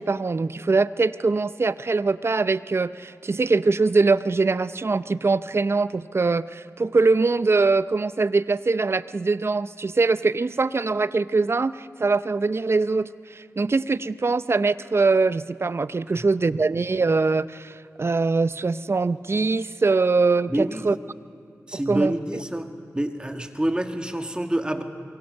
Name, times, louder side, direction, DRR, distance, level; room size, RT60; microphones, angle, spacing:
voice 1, 0.0-21.0 21.9-22.1, right 3 dB, 45° right, 15 dB, 0.6 m, -22 dB
voice 2, 20.5-20.9 21.7-24.8, right 1 dB, 15° right, 6 dB, 1.9 m, -27 dB
25.5 x 22.5 x 6.6 m, 2.3 s
cardioid pair, 50°, 6 cm